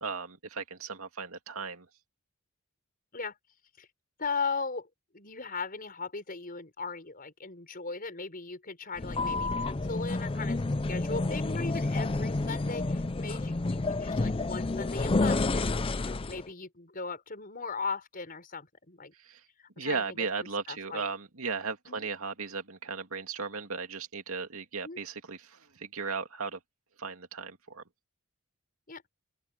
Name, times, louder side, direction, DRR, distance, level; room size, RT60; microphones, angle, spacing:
voice 1, 0.0-1.9 19.2-19.4 19.8-26.6 27.0-27.8, right 4 dB, 75° right, 2.6 m, -36 dB
voice 2, 4.2-4.9 5.1-10.6 10.9-19.1 19.6-20.3 20.7-21.0 21.9-22.1 24.8-25.0 28.9-29.0, left 4 dB, 40° left, 5.4 m, -38 dB
sound 1, 9.0-16.5, left 2 dB, 25° left, 0.5 m, -30 dB
open air
head